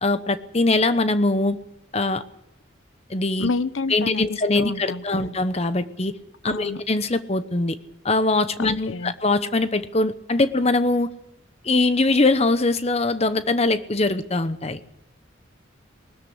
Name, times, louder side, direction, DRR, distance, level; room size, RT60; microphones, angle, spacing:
voice 1, 0.0-1.6 1.9-2.2 3.1-3.5 3.9-6.1 6.4-7.8 8.0-11.1 11.6-14.8, left 2 dB, 30° left, 12 dB, 1.0 m, -22 dB
voice 2, 3.4-5.3 6.5-6.8 8.6-9.1, left 3 dB, 85° left, 15 dB, 0.9 m, -29 dB
20.5 x 13.5 x 9.9 m, 0.83 s
head